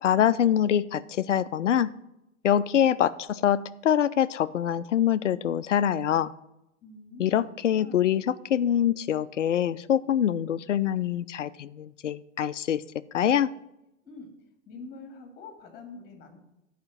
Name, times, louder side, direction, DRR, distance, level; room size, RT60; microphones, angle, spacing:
voice 1, 0.0-1.9 2.4-6.3 7.2-8.2 8.5-12.8 13.1-13.5, left 10 dB, 70° left, 17 dB, 0.5 m, -24 dB
voice 2, 6.8-8.0 14.0-14.3 14.7-16.4, left 3 dB, 25° left, 4 dB, 2.1 m, -45 dB
10.5 x 5.1 x 7.4 m, 0.88 s
figure-of-eight pair, 100°, 38 cm